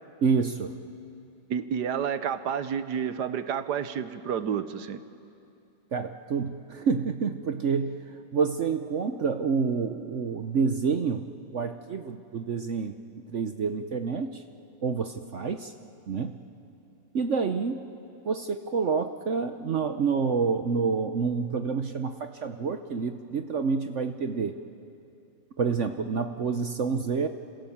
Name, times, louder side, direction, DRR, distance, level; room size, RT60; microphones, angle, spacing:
voice 1, 0.2-0.8 5.9-8.0 8.3-11.3 11.5-14.4 14.8-15.7 16.1-16.4 17.1-17.8 18.2-24.5 25.6-27.3, right 5 dB, 55° right, 8 dB, 1.0 m, -28 dB
voice 2, 1.5-5.0, right 8 dB, 70° right, 11 dB, 1.5 m, -30 dB
29.5 x 26.5 x 7.2 m, 2.7 s
omnidirectional pair, 1.9 m